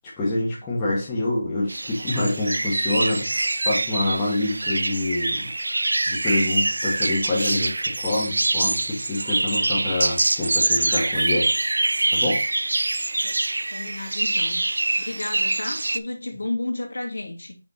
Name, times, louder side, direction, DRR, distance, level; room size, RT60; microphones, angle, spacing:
voice 1, 0.2-5.5 6.1-11.5 12.1-12.4, left 2 dB, 10° left, 1.2 m, -26 dB
sound 1, 1.7-16.0, right 2 dB, 75° right, 0.4 m, -24 dB
voice 2, 13.7-14.6 15.0-17.6, left 2 dB, 80° left, 2.0 m, -32 dB
6.0 x 4.3 x 4.0 m
figure-of-eight pair, 175°, 0 cm